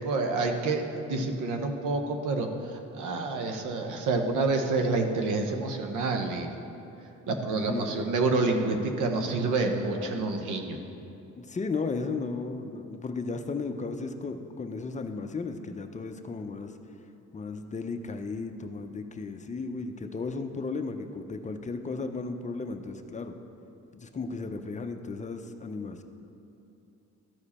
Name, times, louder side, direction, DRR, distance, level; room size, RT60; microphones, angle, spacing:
voice 1, 0.0-6.6 7.3-10.8, right 3 dB, 80° right, 4 dB, 0.9 m, -28 dB
voice 2, 7.7-8.1 9.9-10.3 11.3-16.7 17.3-23.3 23.9-26.0, left 4 dB, 25° left, 6 dB, 0.6 m, -35 dB
13.0 x 4.9 x 4.2 m, 2.8 s
cardioid pair, 90°, 30 cm